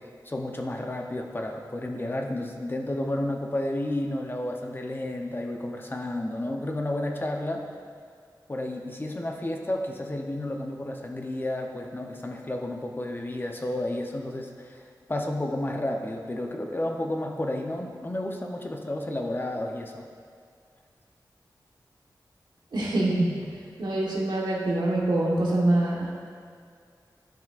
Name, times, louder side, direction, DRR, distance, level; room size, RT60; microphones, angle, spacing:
voice 1, 0.2-7.6 8.5-14.8 15.1-20.0, left 1 dB, 25° left, 2 dB, 0.8 m, -31 dB
voice 2, 22.7-23.5 23.8-26.1, right 1 dB, 70° right, -4 dB, 1.4 m, -25 dB
12.5 x 5.6 x 2.5 m, 2.2 s
wide cardioid pair, 90°, 8 cm